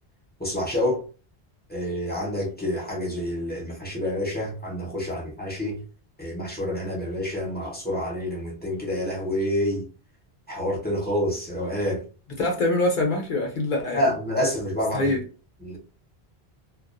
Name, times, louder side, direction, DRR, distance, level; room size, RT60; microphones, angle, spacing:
voice 1, 0.4-1.0 1.7-5.8 6.2-9.8 10.5-12.0 13.9-15.1 15.6-15.8, left 1 dB, 10° left, 0.6 m, -28 dB
voice 2, 12.4-14.0 14.9-15.2, left 2 dB, 55° left, 0.7 m, -24 dB
2.3 x 2.3 x 2.4 m
omnidirectional pair, 1.1 m